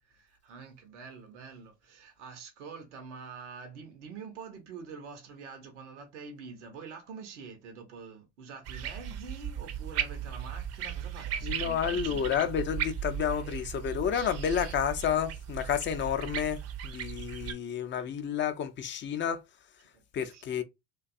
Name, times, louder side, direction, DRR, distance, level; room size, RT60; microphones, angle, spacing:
voice 1, 0.1-12.3 19.9-20.6, right 5 dB, 85° right, 0.7 m, -46 dB
sound 1, 8.7-17.5, right 9 dB, 45° right, 0.5 m, -36 dB
voice 2, 11.4-16.6 16.8-19.4 20.1-20.6, left 8 dB, 35° left, 0.5 m, -30 dB
2.5 x 2.2 x 2.5 m
hypercardioid pair, 70°, 35 cm